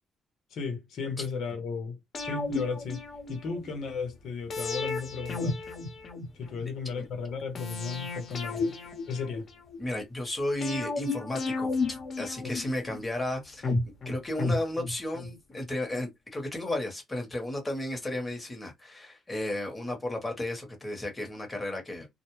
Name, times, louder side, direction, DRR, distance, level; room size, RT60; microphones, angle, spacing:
voice 1, 0.5-5.6 6.3-8.8 9.1-9.5 12.4-12.5, left 5 dB, 70° left, 0.9 m, -35 dB
sound 1, 2.1-3.7 4.5-6.6 7.6-9.8 10.6-13.0 13.6-15.3 15.6-15.7, left 3 dB, 50° left, 1.1 m, -33 dB
voice 2, 9.8-13.7 14.0-22.1, left 1 dB, 20° left, 1.2 m, -34 dB
2.2 x 2.2 x 3.0 m
cardioid pair, 90°, 0 cm